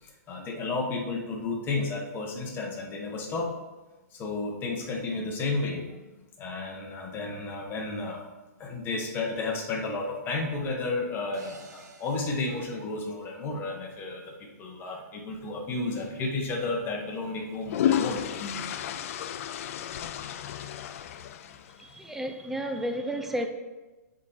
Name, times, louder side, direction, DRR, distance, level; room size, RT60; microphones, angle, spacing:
voice 1, 0.0-3.5 4.1-6.0 6.4-8.3 8.6-18.8 20.3-20.4, left 3 dB, 20° left, 0 dB, 1.2 m, -32 dB
sound 1, 11.3-13.7, right 2 dB, 80° right, 1.4 m, -51 dB
sound 2, 16.0-16.2 17.3-21.9, left 9 dB, 55° left, 0.4 m, -32 dB
voice 2, 21.8-23.5, right 1 dB, 5° right, 4 dB, 0.5 m, -32 dB
7.3 x 3.8 x 4.2 m, 1.1 s
hypercardioid pair, 140°, 9 cm